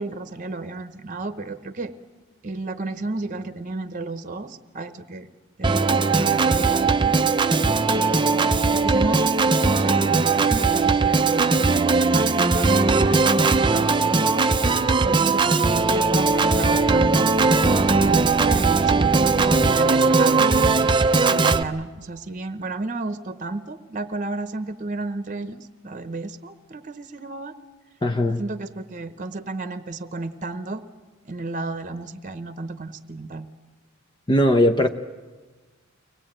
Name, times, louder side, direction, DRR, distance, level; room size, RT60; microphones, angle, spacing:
voice 1, 0.0-1.9 2.4-5.3 5.6-7.2 7.9-13.2 13.5-14.6 15.0-17.3 17.9-20.9 21.3-27.5 28.2-30.8 31.2-33.5, right 2 dB, 40° right, 10 dB, 1.0 m, -33 dB
Organ, 5.6-21.6, right 4 dB, 25° right, 0.6 m, -19 dB
voice 2, 28.0-28.4 34.3-34.9, left 1 dB, 20° left, 5 dB, 0.7 m, -19 dB
24.0 x 19.0 x 8.9 m, 1.4 s
head